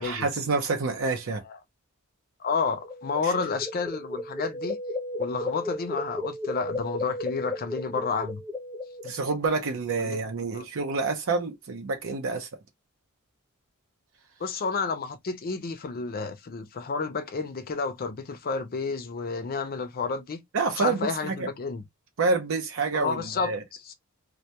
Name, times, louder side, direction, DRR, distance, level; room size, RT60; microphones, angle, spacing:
voice 1, 0.0-1.4 3.2-3.3 9.0-12.5 20.5-21.5 22.2-23.6, right 4 dB, 65° right, 0.6 m, -28 dB
voice 2, 2.4-4.8 5.2-8.4 10.0-10.2 10.5-10.6 14.4-20.4 20.8-21.8 22.9-23.9, left 4 dB, 45° left, 0.5 m, -31 dB
sound 1, 2.8-9.3, left 2 dB, ahead, 0.7 m, -34 dB
2.2 x 2.1 x 2.7 m
head